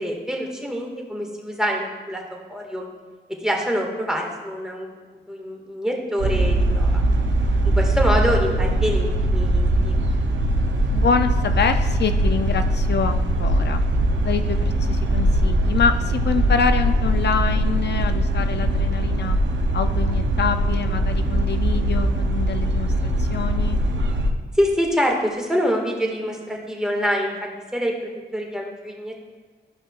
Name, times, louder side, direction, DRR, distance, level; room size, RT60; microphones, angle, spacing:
voice 1, 0.0-2.9 3.4-4.9 5.3-7.0 7.6-10.0 24.5-29.2, equal, 5° right, 0 dB, 1.7 m, -25 dB
sound 1, 6.2-24.3, right 1 dB, 90° right, 0.6 m, -21 dB
voice 2, 10.9-13.8 14.3-19.4 19.7-23.8, left 6 dB, 65° left, 8 dB, 0.4 m, -26 dB
12.5 x 5.4 x 2.4 m, 1.5 s
cardioid pair, 45°, 19 cm